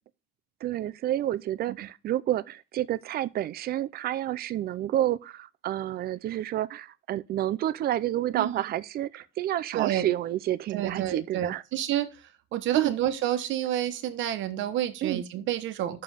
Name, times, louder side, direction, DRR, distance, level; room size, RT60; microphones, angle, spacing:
voice 1, 0.6-11.6 12.7-13.0 15.0-15.2, right 13 dB, 55° right, 0.5 m, -29 dB
voice 2, 8.3-8.6 9.7-10.1 10.7-16.0, right 12 dB, 85° right, 1.1 m, -29 dB
9.5 x 6.7 x 3.5 m
cardioid pair, 170°, 19 cm